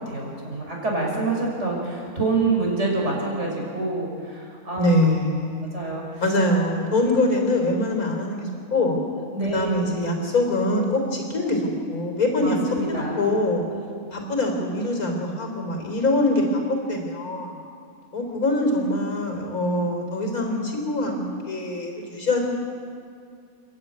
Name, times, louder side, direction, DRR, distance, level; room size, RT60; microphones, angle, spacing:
voice 1, 0.0-5.1 5.7-6.2 9.3-9.9 12.4-13.2, right 3 dB, 55° right, -2 dB, 6.1 m, -27 dB
voice 2, 4.8-5.8 6.2-9.0 9.5-12.6 12.9-13.6 14.1-17.6 18.1-22.4, left 1 dB, 80° left, 3 dB, 4.3 m, -24 dB
29.0 x 12.0 x 9.5 m, 2.3 s
omnidirectional pair, 1.5 m